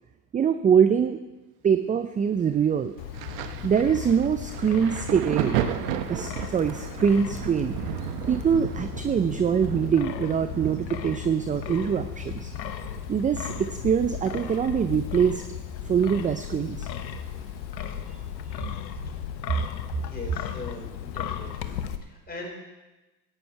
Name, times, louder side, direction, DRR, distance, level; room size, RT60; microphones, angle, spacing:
voice 1, 0.3-1.2 1.6-2.9 3.6-5.7 6.1-7.8 8.3-12.5 13.1-15.4 15.9-16.9 18.1-18.2 18.5-18.6, right 7 dB, 15° right, 10 dB, 0.4 m, -24 dB
Wind, 3.0-22.0, left 10 dB, 90° left, 1.0 m, -36 dB
Thunder, 3.1-16.5 16.7-18.1 18.9-19.1, right 11 dB, 70° right, 1.0 m, -35 dB
voice 2, 20.0-22.6, left 2 dB, 20° left, -1 dB, 4.4 m, -40 dB
14.5 x 9.2 x 4.6 m, 1.1 s
hypercardioid pair, 85°, 50 cm